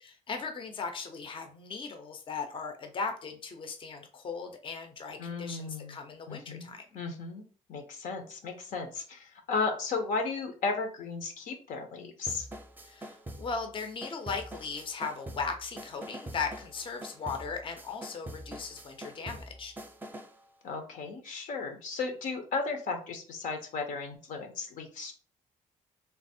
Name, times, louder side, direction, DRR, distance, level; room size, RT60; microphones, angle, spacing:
voice 1, 0.0-7.0 12.8-19.7, left 5 dB, 40° left, 6 dB, 0.6 m, -38 dB
voice 2, 5.2-6.0 6.3-7.4 7.7-12.5 20.6-25.1, left 4 dB, 80° left, 5 dB, 0.8 m, -35 dB
sound 1, 12.3-20.4, right 1 dB, 15° right, 0.5 m, -45 dB
3.4 x 2.0 x 4.2 m, 0.41 s
cardioid pair, 95°, 14 cm